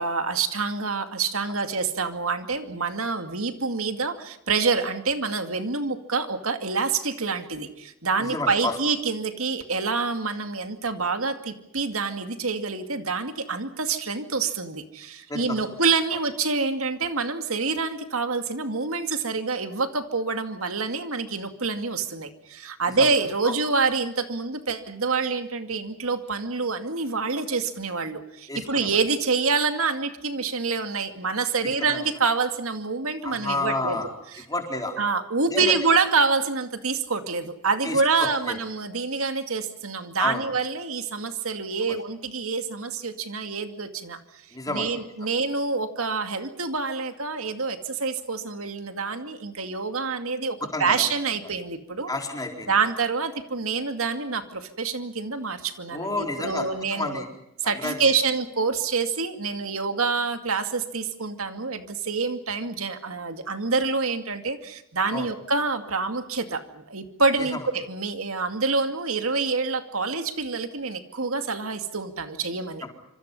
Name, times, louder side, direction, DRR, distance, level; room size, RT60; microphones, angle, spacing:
voice 1, 0.0-34.0 35.0-52.1 52.7-57.2 57.6-72.8, right 4 dB, 70° right, 7 dB, 2.4 m, -27 dB
voice 2, 8.2-8.7 15.3-15.6 22.9-23.1 23.4-23.5 28.5-28.9 31.9-32.0 33.2-34.1 34.5-35.0 35.5-35.7 37.8-38.5 40.2-40.4 41.9-42.0 44.5-44.9 50.7-51.1 52.1-52.7 55.9-57.3 57.6-58.1 65.1-65.3 67.5-67.6 72.8-72.9, left 2 dB, 15° left, 3 dB, 4.3 m, -30 dB
27.0 x 26.5 x 5.5 m, 0.84 s
head